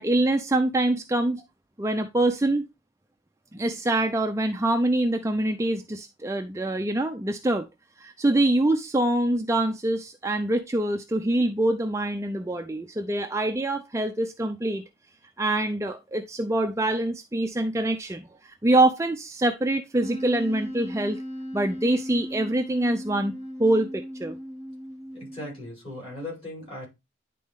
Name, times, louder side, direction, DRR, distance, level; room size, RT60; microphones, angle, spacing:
voice 1, 0.0-1.4 1.8-2.6 3.5-7.7 8.0-14.8 15.4-21.2 21.5-24.4, right 1 dB, 15° right, 0.4 m, -25 dB
Wind instrument woodwind instrument, 20.0-25.7, equal, 15° left, 3.2 m, -37 dB
voice 2, 25.1-26.9, left 1 dB, 30° left, 5.9 m, -38 dB
10.5 x 4.1 x 3.6 m
head